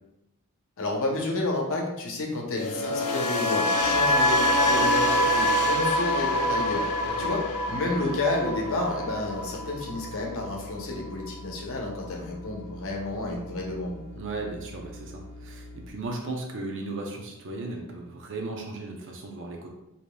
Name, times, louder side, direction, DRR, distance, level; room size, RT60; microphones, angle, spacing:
voice 1, 0.8-6.9 7.2-14.0, left 2 dB, 65° left, -1 dB, 0.8 m, -30 dB
sound 1, 2.5-10.7 10.9-11.3, equal, 90° left, 0.4 m, -25 dB
sound 2, 3.8-15.9, left 2 dB, 75° right, 1.4 m, -44 dB
voice 2, 14.2-19.7, right 2 dB, 60° right, 1 dB, 0.5 m, -36 dB
4.9 x 2.8 x 2.2 m, 0.92 s
head